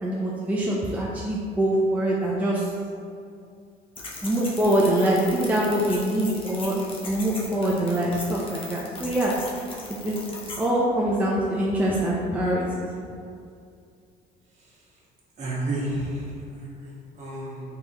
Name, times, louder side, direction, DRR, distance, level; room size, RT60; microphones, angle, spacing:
voice 1, 0.0-2.7 4.2-6.8 7.1-9.3 10.0-12.9, right 1 dB, 10° right, -5 dB, 0.5 m, -24 dB
sound 1, 4.0-10.7, left 2 dB, 30° left, 1.0 m, -39 dB
voice 2, 15.4-17.6, right 1 dB, 40° right, -6 dB, 1.5 m, -31 dB
4.4 x 3.7 x 2.9 m, 2.4 s
cardioid pair, 110°, 17 cm